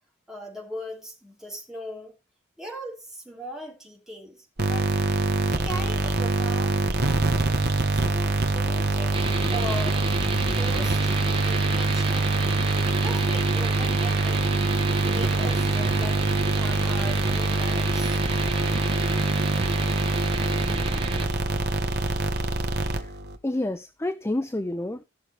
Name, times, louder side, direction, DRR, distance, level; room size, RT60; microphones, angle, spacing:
voice 1, 0.3-2.1 2.6-5.0 5.5-7.4 7.9-10.1 10.5-11.1 11.4-12.5 12.9-14.4 14.9-16.2 16.5-18.2, equal, 5° right, 3.2 m, -39 dB
sound 1, 4.6-23.4, right 2 dB, 55° right, 1.2 m, -24 dB
sound 2, 9.1-21.3, right 3 dB, 30° right, 1.5 m, -33 dB
voice 2, 23.4-25.0, left 1 dB, 15° left, 0.5 m, -29 dB
16.5 x 6.6 x 3.1 m
head